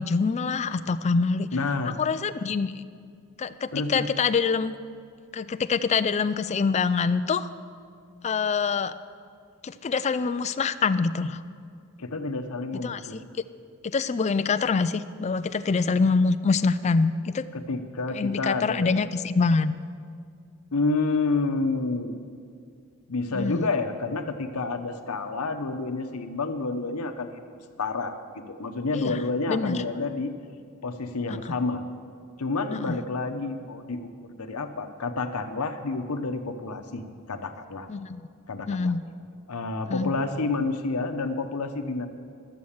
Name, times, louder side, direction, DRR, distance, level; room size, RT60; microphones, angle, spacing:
voice 1, 0.0-1.5 2.0-2.7 3.4-4.7 5.3-7.5 8.2-8.9 9.6-11.4 12.8-13.0 13.8-17.5 18.1-19.8 23.3-23.7 28.9-29.2 29.5-29.8 31.3-31.5 32.7-32.9 37.9-38.3 38.7-39.0 39.8-40.1, left 4 dB, 30° left, 12 dB, 0.3 m, -25 dB
voice 2, 1.5-2.0 3.7-4.1 12.0-13.2 17.5-19.0 20.7-22.2 23.1-27.4 27.8-30.3 30.8-31.8 32.4-37.9 38.5-38.9 39.5-42.1, left 3 dB, 90° left, 7 dB, 0.9 m, -29 dB
13.0 x 7.6 x 7.2 m, 2.2 s
head